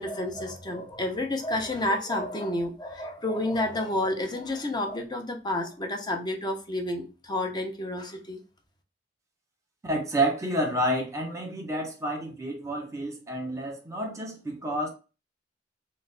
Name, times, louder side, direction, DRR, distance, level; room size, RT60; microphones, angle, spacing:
voice 1, 0.0-8.4, left 1 dB, 25° left, 3 dB, 0.6 m, -30 dB
voice 2, 9.8-14.9, right 1 dB, 15° right, 0 dB, 0.9 m, -29 dB
3.2 x 2.1 x 3.8 m, 0.32 s
head